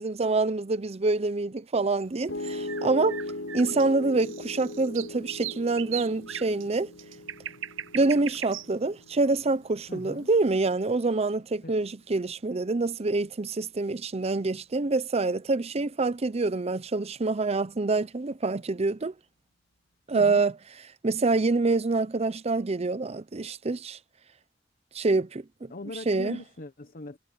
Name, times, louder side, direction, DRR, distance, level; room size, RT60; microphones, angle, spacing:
voice 1, 0.0-3.2 3.5-6.9 7.9-19.1 20.1-20.5 21.0-24.0 24.9-25.7 26.1-26.4, right 3 dB, 35° right, 0.6 m, -26 dB
sound 1, 2.0-10.2, right 11 dB, 85° right, 0.8 m, -40 dB
Piano, 2.3-14.5, left 1 dB, 80° left, 4.8 m, -40 dB
voice 2, 9.9-10.3 11.6-11.7 20.1-20.4 25.7-27.2, left 2 dB, 50° left, 1.1 m, -40 dB
head